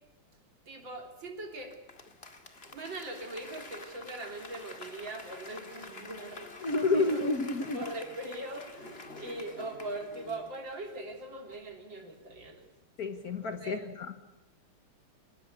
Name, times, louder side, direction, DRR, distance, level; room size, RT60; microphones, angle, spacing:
voice 1, 0.7-1.7 2.6-7.3 7.7-12.7 13.6-13.9, right 2 dB, 60° right, 4 dB, 4.1 m, -41 dB
Applause / Crowd, 1.7-11.1 11.5-11.6, left 3 dB, 30° left, 2.2 m, -48 dB
voice 2, 6.6-7.9 13.0-14.1, left 3 dB, 50° left, 8 dB, 1.7 m, -30 dB
24.5 x 20.5 x 8.4 m, 0.92 s
omnidirectional pair, 2.3 m